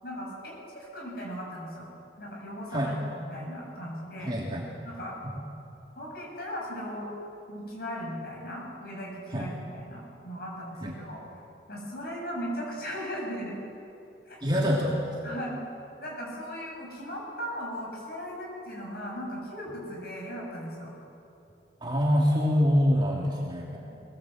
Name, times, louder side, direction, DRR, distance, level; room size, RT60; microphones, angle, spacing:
voice 1, 0.0-1.9 2.2-4.3 4.8-5.2 6.0-7.1 7.5-11.2 11.7-13.6 14.3-14.6 15.2-15.6 16.0-20.9, equal, 55° left, -2 dB, 7.5 m, -37 dB
voice 2, 4.2-4.7 9.3-9.5 10.8-11.0 14.4-15.1 21.8-23.8, equal, 25° right, -4 dB, 2.9 m, -25 dB
22.5 x 19.0 x 8.0 m, 2.8 s
head